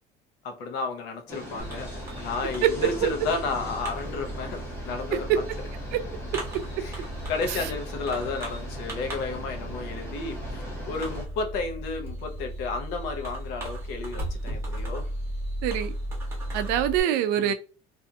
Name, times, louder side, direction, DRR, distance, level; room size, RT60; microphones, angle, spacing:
voice 1, 0.4-5.4 6.8-15.1 17.4-17.5, left 4 dB, 80° left, 0.7 m, -32 dB
sound 1, 1.3-11.2, equal, 15° left, 0.6 m, -41 dB
Fireworks, 1.6-17.0, right 1 dB, 15° right, 1.1 m, -36 dB
voice 2, 15.6-15.9 16.5-17.5, right 11 dB, 75° right, 0.4 m, -24 dB
2.6 x 2.6 x 2.3 m
cardioid pair, 165°, 17 cm